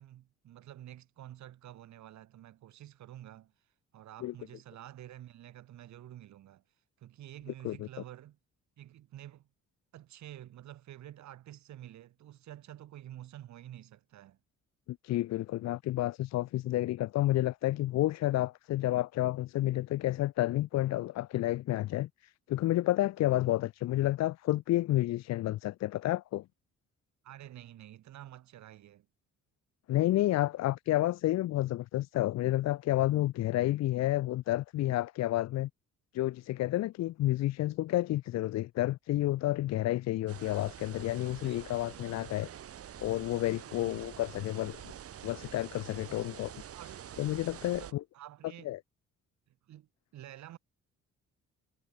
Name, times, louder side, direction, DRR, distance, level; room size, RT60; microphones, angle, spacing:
voice 1, 0.0-3.5 3.9-6.6 7.0-8.4 8.8-9.5 9.9-14.4 27.2-29.1 41.4-42.1 43.8-44.2 46.7-47.0 47.6-48.7 49.7-49.9 50.1-50.6, right 12 dB, 65° right, 1.2 m, -49 dB
voice 2, 14.9-22.1 22.5-26.4 29.9-35.7 36.1-42.5 43.0-44.9 45.2-46.5 47.2-47.8 48.7-48.8, left 15 dB, 60° left, 0.5 m, -30 dB
sound 1, 40.3-47.9, right 10 dB, 50° right, 1.0 m, -47 dB
cardioid pair, 90°, 30 cm